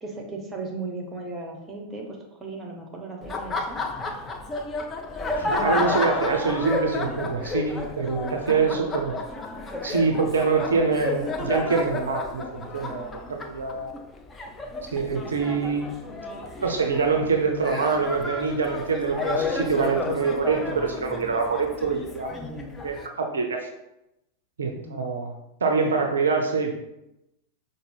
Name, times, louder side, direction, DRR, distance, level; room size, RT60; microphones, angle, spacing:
voice 1, 0.0-3.8 8.5-8.8 22.3-22.8 24.7-25.1, right 2 dB, 15° right, 1 dB, 0.9 m, -37 dB
Laughter, 3.2-23.1, left 3 dB, 20° left, 0.4 m, -31 dB
voice 2, 5.4-9.2 9.8-13.9 14.9-15.9 16.6-22.3 22.8-23.7 24.6-25.3 25.6-26.7, right 4 dB, 70° right, 3 dB, 0.4 m, -25 dB
4.9 x 2.1 x 3.2 m, 0.89 s
figure-of-eight pair, 90°, 0 cm